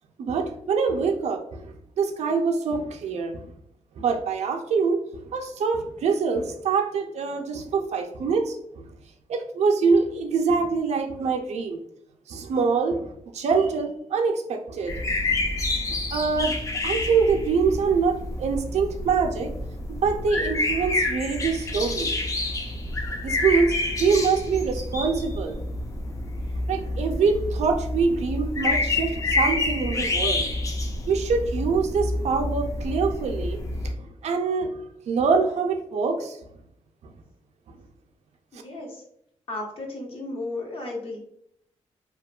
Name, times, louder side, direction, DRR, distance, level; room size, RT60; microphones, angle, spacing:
voice 1, 0.2-3.4 4.0-8.8 9.3-11.8 12.3-15.0 15.3-15.4 15.9-16.6 16.8-19.6 19.9-22.1 23.2-23.7 24.0-25.6 26.7-30.5 31.1-33.6 34.0-34.8 35.1-36.4 37.0-37.1, right 5 dB, 70° right, 4 dB, 0.4 m, -25 dB
sound 1, 14.9-33.9, left 2 dB, 30° left, 0.4 m, -28 dB
voice 2, 38.5-39.0 39.5-41.2, left 2 dB, 50° left, -1 dB, 0.7 m, -34 dB
2.8 x 2.1 x 2.3 m, 0.73 s
wide cardioid pair, 155°, 12 cm